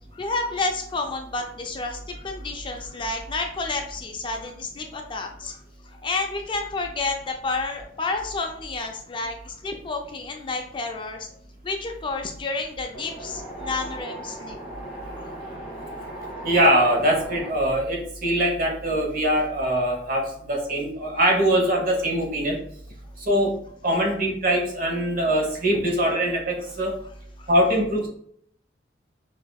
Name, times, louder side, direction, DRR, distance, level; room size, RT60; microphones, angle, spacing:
voice 1, 0.1-11.3 11.6-14.6 15.2-15.3 15.9-16.1 25.7-25.8 27.4-27.5, left 3 dB, 30° left, 3 dB, 0.4 m, -30 dB
Wind, 12.9-17.5, right 1 dB, ahead, 1.5 m, -37 dB
voice 2, 16.4-22.5 23.3-23.5 23.8-26.9 27.5-28.1, right 1 dB, 50° right, -1 dB, 1.1 m, -22 dB
6.0 x 2.7 x 2.3 m, 0.66 s
head